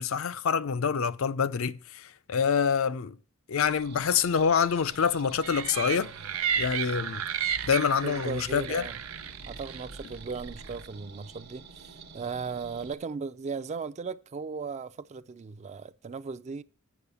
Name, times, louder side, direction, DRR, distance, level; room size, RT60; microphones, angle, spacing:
voice 1, 0.0-3.2 3.5-6.1 6.6-7.2 7.6-8.9, left 6 dB, 75° left, 0.5 m, -26 dB
sound 1, 3.7-12.9, right 4 dB, 55° right, 0.8 m, -49 dB
sound 2, 5.4-10.9, right 7 dB, 90° right, 0.7 m, -34 dB
voice 2, 8.0-9.0 9.5-16.6, right 5 dB, 35° right, 0.3 m, -37 dB
8.4 x 5.4 x 6.8 m
head